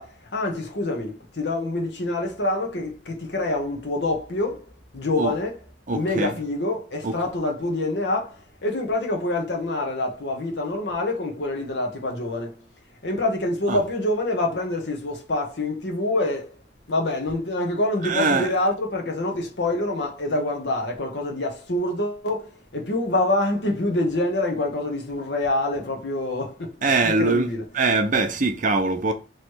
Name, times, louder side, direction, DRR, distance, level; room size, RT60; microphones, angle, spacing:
voice 1, 0.0-5.6 5.9-12.5 13.0-16.6 16.9-27.6, left 2 dB, 70° left, 1.0 m, -26 dB
voice 2, 5.9-6.3 7.0-7.1 13.7-13.8 18.0-18.5 26.8-27.5 27.7-29.1, right 3 dB, 45° right, 0.7 m, -22 dB
3.1 x 3.1 x 4.6 m
head